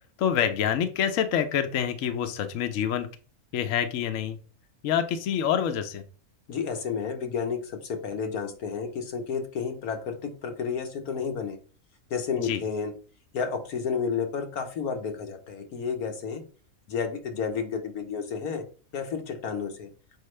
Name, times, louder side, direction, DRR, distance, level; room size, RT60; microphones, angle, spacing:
voice 1, 0.2-3.1 3.5-4.4 4.8-6.0 12.4-12.6, left 9 dB, 65° left, 8 dB, 1.0 m, -26 dB
voice 2, 6.5-11.6 12.1-12.9 13.3-16.4 16.9-18.6 18.9-19.9, left 6 dB, 90° left, 4 dB, 1.5 m, -31 dB
6.6 x 4.7 x 3.2 m, 0.38 s
omnidirectional pair, 1.5 m